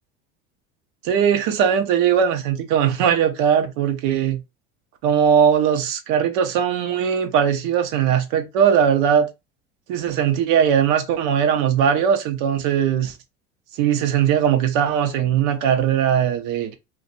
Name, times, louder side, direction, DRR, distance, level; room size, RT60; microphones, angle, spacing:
voice 1, 1.0-4.4 5.0-9.3 9.9-13.1 13.8-16.8, right 8 dB, 70° right, 0.8 m, -19 dB
2.5 x 2.4 x 4.0 m
hypercardioid pair, 80°, 32 cm